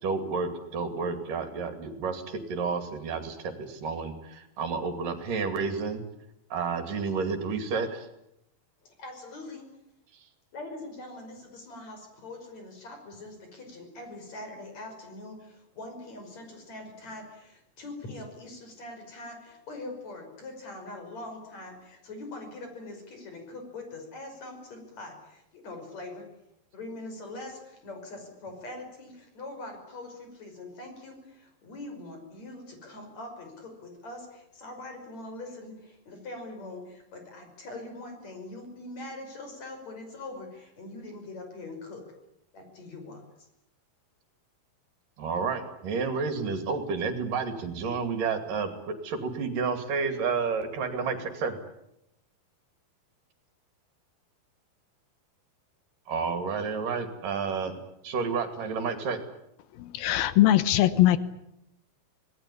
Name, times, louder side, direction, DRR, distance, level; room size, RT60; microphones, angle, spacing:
voice 1, 0.0-6.0 6.5-8.1 45.2-51.6 56.1-57.8 58.0-59.2, right 5 dB, 65° right, 8 dB, 4.0 m, -30 dB
voice 2, 8.8-9.6 10.5-26.2 26.7-42.0 42.5-43.2, left 2 dB, 50° left, 4 dB, 6.8 m, -42 dB
voice 3, 59.8-61.2, left 14 dB, 85° left, 14 dB, 2.9 m, -21 dB
26.0 x 19.0 x 10.0 m, 0.83 s
omnidirectional pair, 4.1 m